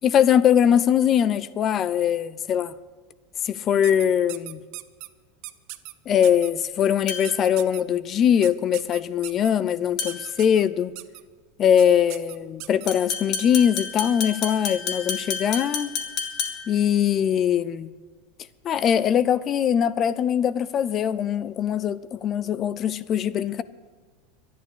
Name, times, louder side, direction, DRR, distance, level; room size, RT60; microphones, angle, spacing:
voice 1, 0.0-2.7 3.4-4.6 6.1-10.9 11.6-15.9 16.7-17.9 18.6-23.6, left 9 dB, 25° left, 0.4 m, -22 dB
sound 1, 3.8-5.1 5.4-5.9 6.2-6.5 7.2-7.8 8.4-9.5 10.1-10.6 11.0-11.2 11.8-11.9 12.1-12.9, right 19 dB, 45° right, 0.6 m, -38 dB
sound 2, 7.1-7.5 10.0-10.4 12.9-16.8, left 6 dB, 40° left, 1.6 m, -31 dB
11.5 x 11.0 x 8.1 m
supercardioid pair, 170°, 0 cm